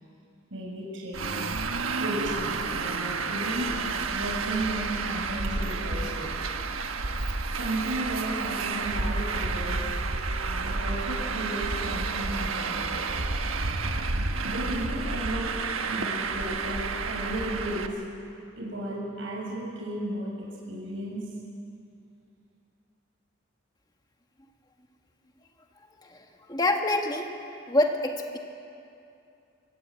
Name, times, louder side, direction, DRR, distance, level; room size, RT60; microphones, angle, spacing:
voice 1, 0.5-1.6 2.0-3.7 4.1-6.3 7.5-9.8 10.4-13.0 14.4-15.5 15.9-18.0 18.5-21.3, right 1 dB, 70° right, -4 dB, 6.7 m, -34 dB
Traffic noise roadway noise, 1.1-17.9, right 4 dB, 90° right, 1.4 m, -30 dB
voice 2, 26.5-27.3 27.7-28.4, left 1 dB, 20° left, 3 dB, 1.8 m, -25 dB
26.0 x 16.5 x 8.6 m, 2.6 s
head